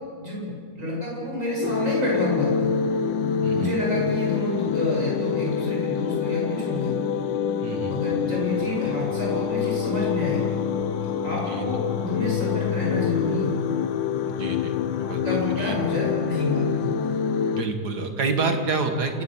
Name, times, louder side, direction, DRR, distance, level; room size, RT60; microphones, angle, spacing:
voice 1, 0.2-2.7 3.5-6.9 7.8-10.5 11.2-13.5 15.2-17.2, left 1 dB, 40° right, -5 dB, 8.5 m, -29 dB
sound 1, 1.6-17.6, left 7 dB, 85° left, 1.6 m, -26 dB
voice 2, 7.6-8.0 11.3-11.6 14.4-15.8 17.5-19.2, right 3 dB, 60° right, 5 dB, 2.5 m, -28 dB
27.5 x 17.0 x 7.4 m, 2.3 s
omnidirectional pair, 2.0 m